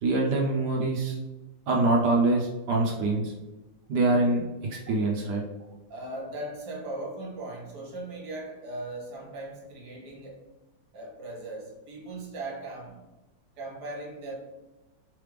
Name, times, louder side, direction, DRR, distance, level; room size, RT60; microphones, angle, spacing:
voice 1, 0.0-1.2 1.7-3.3 3.9-4.4 4.7-5.4, right 2 dB, 70° right, -1 dB, 1.0 m, -24 dB
voice 2, 5.9-10.4 10.9-13.0 13.6-14.3, right 2 dB, 55° right, -2 dB, 1.6 m, -38 dB
3.8 x 3.2 x 3.3 m, 1.1 s
omnidirectional pair, 2.4 m